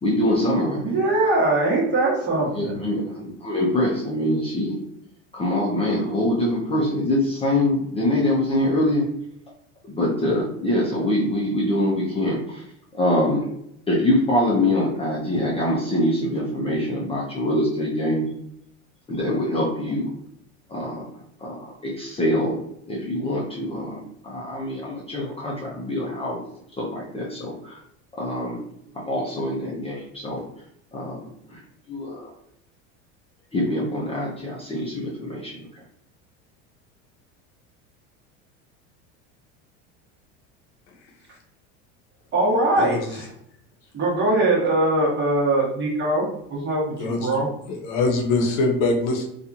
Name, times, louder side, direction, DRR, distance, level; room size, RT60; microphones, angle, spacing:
voice 1, 0.0-1.0 2.4-4.8 5.3-9.1 9.9-12.7 12.9-13.5 13.9-18.3 19.1-20.1 20.7-27.8 28.1-28.6 28.9-30.4 30.9-31.6 31.9-32.3 33.5-35.8, left 1 dB, 15° left, -5 dB, 0.6 m, -24 dB
voice 2, 0.8-2.7 42.3-43.3 43.9-47.5, right 2 dB, 30° right, -3 dB, 1.2 m, -22 dB
voice 3, 42.8-43.2 47.0-47.4 47.7-49.3, left 3 dB, 75° left, 3 dB, 0.8 m, -23 dB
2.8 x 2.3 x 2.5 m, 0.73 s
supercardioid pair, 115°, 35 cm